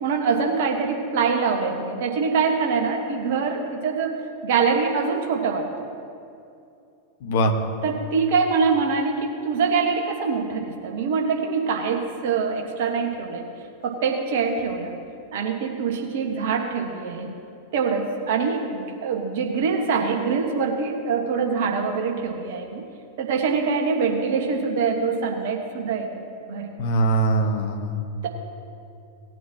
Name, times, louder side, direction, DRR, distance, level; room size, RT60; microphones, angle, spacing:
voice 1, 0.0-4.2 4.4-5.6 7.8-13.4 13.8-14.9 15.3-17.3 17.7-22.8 23.2-26.7, right 5 dB, 55° right, 2 dB, 1.3 m, -24 dB
voice 2, 7.2-7.5 26.8-28.0, right 2 dB, 55° left, 4 dB, 1.2 m, -22 dB
18.0 x 9.1 x 2.9 m, 2.6 s
figure-of-eight pair, 90°, 0 cm